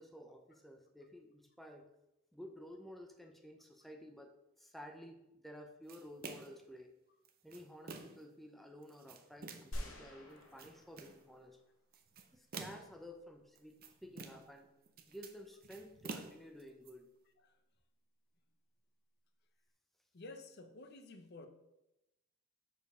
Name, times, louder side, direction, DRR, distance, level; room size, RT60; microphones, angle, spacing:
voice 1, 0.0-1.9 2.3-6.9 7.4-11.6 12.3-14.7 15.1-17.1, equal, ahead, 3 dB, 0.6 m, -53 dB
sound 1, 5.9-6.6 7.2-8.3 8.8-9.8 10.4-11.2 11.9-13.0 13.6-14.6 14.9-16.9, right 4 dB, 45° right, 0.6 m, -49 dB
sound 2, 9.7-12.0, equal, 80° left, 1.3 m, -47 dB
voice 2, 20.1-21.5, left 2 dB, 55° left, 7 dB, 0.7 m, -52 dB
5.1 x 4.6 x 5.4 m, 0.91 s
head